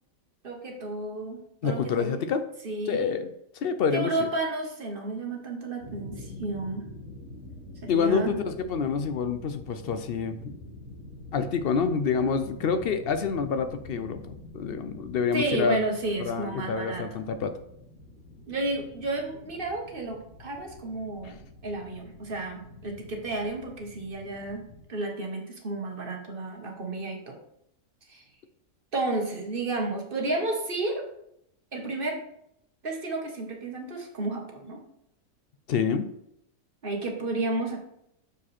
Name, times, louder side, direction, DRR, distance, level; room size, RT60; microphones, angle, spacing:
voice 1, 0.4-2.1 2.6-3.2 3.9-6.9 7.8-8.3 15.3-17.0 18.5-24.6 24.9-27.4 28.1-28.2 28.9-31.1 31.7-32.2 32.8-34.8 36.8-37.8, right 2 dB, 40° right, 1 dB, 1.4 m, -32 dB
voice 2, 1.6-2.4 2.9-3.3 3.6-4.3 7.9-10.5 11.3-15.8 16.2-17.5 35.7-36.1, left 6 dB, 65° left, 10 dB, 0.6 m, -27 dB
sound 1, 5.8-24.8, left 2 dB, 85° left, 2.4 m, -46 dB
6.8 x 4.9 x 4.2 m, 0.75 s
omnidirectional pair, 1.5 m